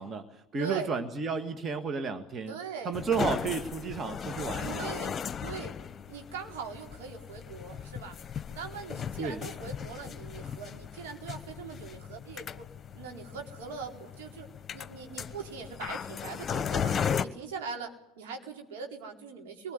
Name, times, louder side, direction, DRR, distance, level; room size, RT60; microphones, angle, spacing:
voice 1, 0.0-2.6 2.8-4.9 9.2-9.4, right 5 dB, 30° right, 8 dB, 1.9 m, -32 dB
voice 2, 0.6-0.9 2.5-3.0 4.6-5.7 6.1-8.2 8.5-12.5 12.9-14.5 14.7-17.0 17.2-17.9 18.2-19.7, right 5 dB, 70° right, 3 dB, 4.3 m, -41 dB
sound 1, 2.9-17.2, left 7 dB, 30° left, 1.2 m, -36 dB
24.5 x 20.0 x 9.6 m, 0.91 s
hypercardioid pair, 80°, 0 cm